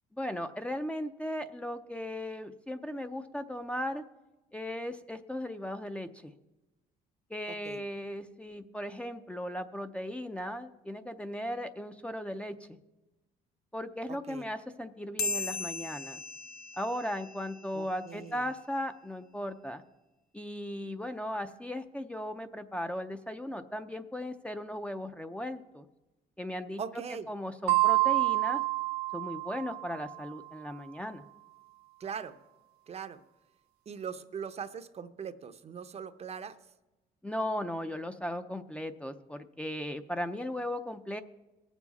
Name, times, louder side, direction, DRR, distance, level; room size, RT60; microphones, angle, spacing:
voice 1, 0.1-4.0 4.5-6.3 7.3-12.8 13.7-16.2 16.8-19.8 20.3-25.9 26.4-26.8 27.3-28.6 29.1-31.2 37.2-41.2, left 1 dB, 5° left, 8 dB, 0.5 m, -37 dB
voice 2, 7.5-7.8 14.3-14.5 17.7-18.4 26.8-27.3 32.0-32.4 32.9-33.2 33.9-36.6, right 7 dB, 40° right, 10 dB, 0.7 m, -40 dB
sound 1, 15.2-18.0, left 4 dB, 65° left, 0.9 m, -37 dB
sound 2, 27.7-30.2, right 19 dB, 80° right, 0.6 m, -28 dB
19.0 x 7.2 x 4.1 m, 1.0 s
cardioid pair, 110°, 17 cm